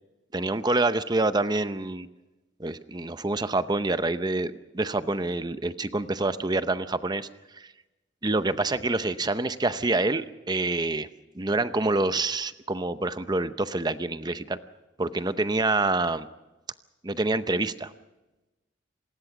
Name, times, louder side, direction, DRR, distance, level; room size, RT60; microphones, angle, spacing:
voice 1, 0.3-2.1 2.6-7.3 7.5-7.7 8.2-11.1 11.3-14.6 15.0-16.3 17.0-17.9, right 2 dB, 20° right, 12 dB, 0.7 m, -27 dB
26.5 x 19.5 x 6.0 m, 1.1 s
head